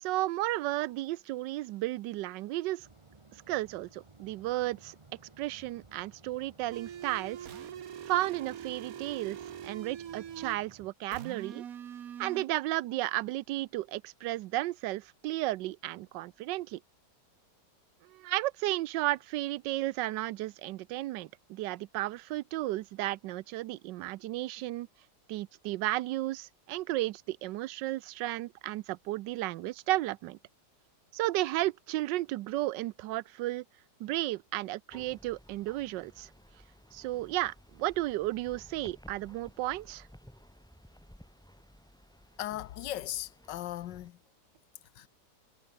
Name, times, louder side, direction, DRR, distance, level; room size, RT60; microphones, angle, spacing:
voice 1, 0.0-2.9 3.5-5.0 5.4-7.5 8.1-11.6 12.2-16.8 18.1-24.9 25.3-30.4 31.1-33.6 34.0-36.3 36.9-40.1, right 16 dB, 90° right, 1.3 m, -33 dB
sound 1, 2.8-10.9, right 3 dB, 20° right, 1.0 m, -58 dB
sound 2, 6.7-10.7 11.1-12.4, right 9 dB, 55° right, 1.4 m, -43 dB
sound 3, 34.9-44.1, equal, ahead, 2.1 m, -56 dB
voice 2, 42.4-44.2 45.0-45.1, left 13 dB, 85° left, 1.4 m, -37 dB
omnidirectional pair, 1.9 m